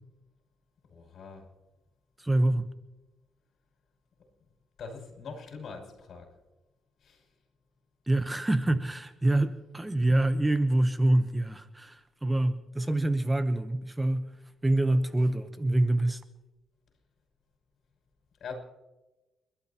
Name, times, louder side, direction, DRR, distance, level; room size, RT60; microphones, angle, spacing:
voice 1, 0.9-1.5 4.8-6.3 7.0-7.3 18.4-18.6, left 4 dB, 60° left, 2 dB, 5.9 m, -43 dB
voice 2, 2.2-2.7 8.1-14.3 14.6-16.2, right 1 dB, 15° right, 10 dB, 0.9 m, -26 dB
30.0 x 12.5 x 2.9 m, 1.1 s
cardioid pair, 90°, 0 cm